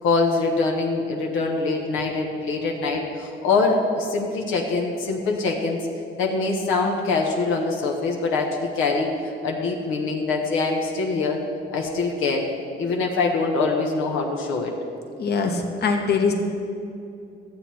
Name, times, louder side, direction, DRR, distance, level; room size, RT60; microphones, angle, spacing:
voice 1, 0.0-5.8 6.2-9.1 9.4-11.4 11.7-12.5 12.8-14.7, left 3 dB, 90° left, 0 dB, 1.1 m, -24 dB
voice 2, 15.2-16.3, left 5 dB, 55° left, 3 dB, 1.2 m, -22 dB
12.5 x 7.6 x 4.3 m, 2.7 s
cardioid pair, 90°, 20 cm